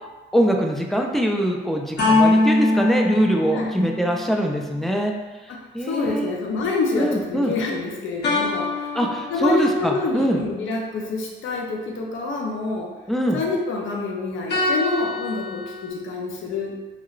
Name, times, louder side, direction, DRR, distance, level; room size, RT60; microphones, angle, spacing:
voice 1, 0.3-5.1 5.7-6.3 7.0-7.5 8.9-10.4 13.1-13.4, equal, ahead, 1 dB, 0.4 m, -23 dB
sound 1, 2.0-4.5 8.2-10.0 14.5-15.9, left 2 dB, 60° left, 0.9 m, -23 dB
voice 2, 5.5-8.9 9.3-12.9 13.3-16.8, left 3 dB, 80° left, -1 dB, 0.5 m, -27 dB
2.9 x 2.8 x 2.4 m, 1.2 s
cardioid pair, 95°, 20 cm